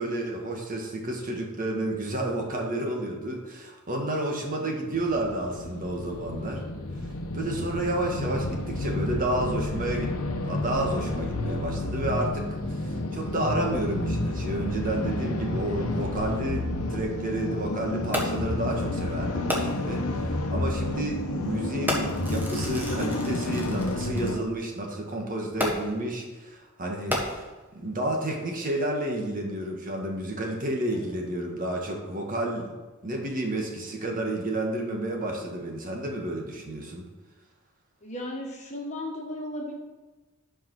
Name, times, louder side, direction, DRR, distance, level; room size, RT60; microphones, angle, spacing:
voice 1, 0.0-6.6 7.3-10.1 10.4-27.4 27.7-37.1, right 1 dB, 40° right, 1 dB, 1.6 m, -31 dB
sound 1, 4.9-24.4, left 2 dB, 90° left, 1.0 m, -30 dB
Fireworks, 18.1-18.6 19.5-20.0 20.9-21.0 21.9-24.3 25.6-26.1 26.9-27.8 28.5-28.6, equal, 10° right, 1.5 m, -32 dB
voice 2, 38.0-39.7, left 1 dB, 35° left, -1 dB, 1.6 m, -36 dB
11.0 x 5.1 x 6.0 m, 1.2 s
head